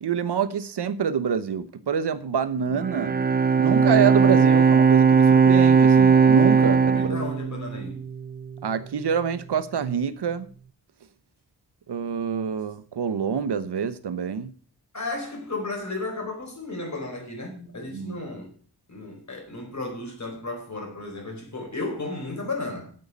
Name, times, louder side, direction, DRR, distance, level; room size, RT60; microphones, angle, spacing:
voice 1, 0.0-3.2 3.6-7.2 8.6-10.5 11.9-14.5 17.9-18.2, right 7 dB, 90° right, 1.0 m, -26 dB
Bowed string instrument, 2.7-8.2, right 6 dB, 25° right, 0.5 m, -18 dB
voice 2, 6.9-8.1 14.9-18.5 18.9-22.9, left 2 dB, 45° left, 4.4 m, -34 dB
9.3 x 7.9 x 6.8 m
wide cardioid pair, 105°, 39 cm